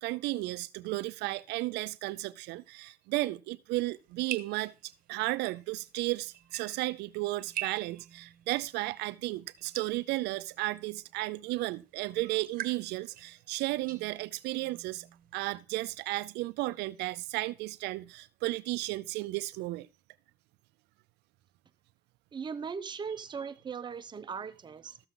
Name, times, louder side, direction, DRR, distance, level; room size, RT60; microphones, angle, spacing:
voice 1, 0.0-15.1 15.3-19.9, right 19 dB, 85° right, 0.4 m, -34 dB
sound 1, 3.9-15.6, right 12 dB, 55° right, 1.0 m, -46 dB
voice 2, 22.3-25.0, right 6 dB, 25° right, 0.7 m, -39 dB
13.5 x 7.0 x 3.7 m
cardioid pair, 110°, 17 cm